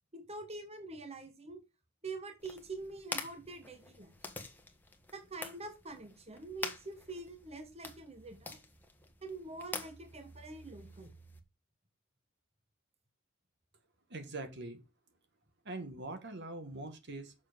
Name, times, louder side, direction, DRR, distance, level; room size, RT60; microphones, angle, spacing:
voice 1, 0.1-1.6 2.0-4.1 5.1-8.6 9.2-11.1, right 3 dB, 30° right, 1.3 m, -45 dB
sound 1, 2.4-11.4, left 2 dB, 10° left, 1.3 m, -47 dB
voice 2, 14.1-14.8 15.6-17.3, right 2 dB, 55° right, 1.6 m, -43 dB
7.2 x 6.6 x 5.2 m
head